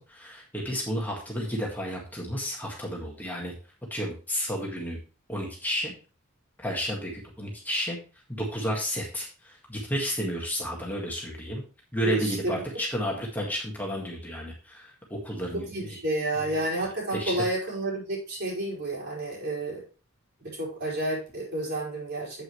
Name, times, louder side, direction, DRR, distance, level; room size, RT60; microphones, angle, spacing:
voice 1, 0.0-3.5 3.9-5.0 5.3-5.9 6.6-7.1 7.4-8.0 8.3-11.6 11.9-16.0 16.4-16.6 17.1-17.5, equal, 10° left, -2 dB, 1.7 m, -32 dB
voice 2, 12.0-12.6 15.5-19.8 20.4-22.4, right 1 dB, 55° right, -5 dB, 5.0 m, -30 dB
8.7 x 8.1 x 3.1 m, 0.36 s
head